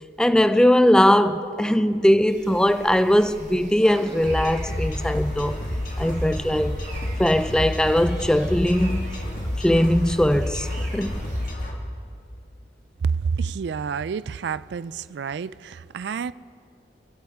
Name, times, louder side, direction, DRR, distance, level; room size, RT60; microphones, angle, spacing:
voice 1, 0.2-5.6 6.0-6.8 7.2-9.2 9.6-11.2, left 1 dB, 5° left, 0.3 m, -20 dB
sound 1, 2.3-11.5, right 2 dB, 40° right, 1.7 m, -43 dB
sound 2, 3.8-5.6, equal, 15° right, 1.2 m, -44 dB
sound 3, 4.2-11.7, left 1 dB, 50° left, 1.9 m, -29 dB
voice 2, 13.2-16.3, right 6 dB, 80° right, 0.3 m, -29 dB
29.0 x 11.5 x 3.6 m
head